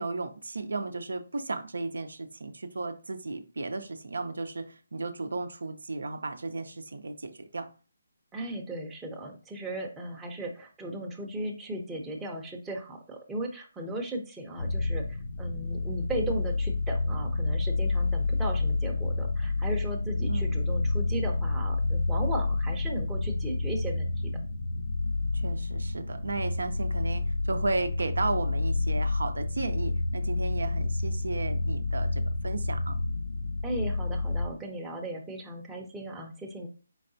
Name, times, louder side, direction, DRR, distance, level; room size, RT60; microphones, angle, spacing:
voice 1, 0.0-7.7 20.3-20.6 25.3-33.0, right 3 dB, 80° right, 8 dB, 0.5 m, -34 dB
voice 2, 8.3-24.1 33.6-36.7, right 1 dB, 5° right, 0 dB, 0.6 m, -36 dB
sound 1, 14.6-34.5, left 2 dB, 55° left, 0.5 m, -29 dB
4.6 x 3.3 x 2.7 m, 0.36 s
hypercardioid pair, 160°, 0 cm